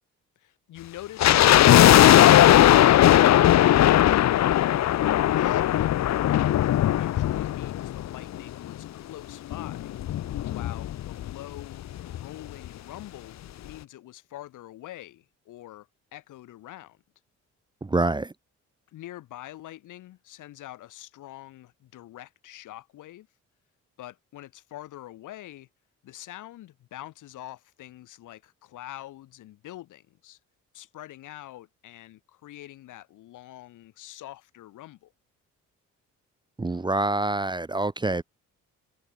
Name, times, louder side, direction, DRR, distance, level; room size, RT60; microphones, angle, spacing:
voice 1, 0.4-3.6 4.5-9.9 10.5-17.0 18.9-23.3 24.0-25.7 26.0-30.4 30.7-35.1, left 14 dB, 85° left, 6.6 m, -45 dB
sound 1, 1.2-8.5 8.7-8.8 9.5-11.3 11.6-11.7 11.9-12.2 12.6-12.7, left 12 dB, 60° left, 0.9 m, -18 dB
voice 2, 17.8-18.3 36.6-38.2, right 2 dB, 15° right, 0.7 m, -26 dB
cardioid pair, 90°, 30 cm